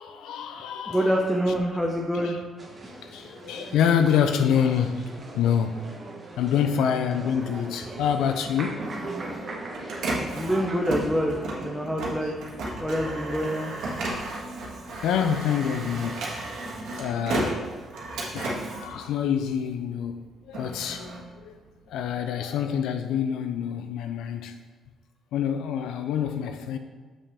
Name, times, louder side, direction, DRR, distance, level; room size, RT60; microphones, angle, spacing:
voice 1, 0.0-1.1 2.1-2.4 2.9-5.1 5.3-5.8 6.4-8.9 14.5-14.6 15.0-17.6 18.3-21.6 21.9-24.6 25.3-26.8, left 8 dB, 85° left, 0.4 m, -27 dB
voice 2, 0.9-2.4 10.3-12.3 12.8-13.7, equal, 5° left, 0.7 m, -26 dB
sound 1, 2.6-11.9, right 2 dB, 35° right, 1.1 m, -39 dB
Printer, 8.4-19.8 20.3-22.1, right 2 dB, 75° right, 1.5 m, -34 dB
6.9 x 5.7 x 3.5 m
cardioid pair, 90°, 0 cm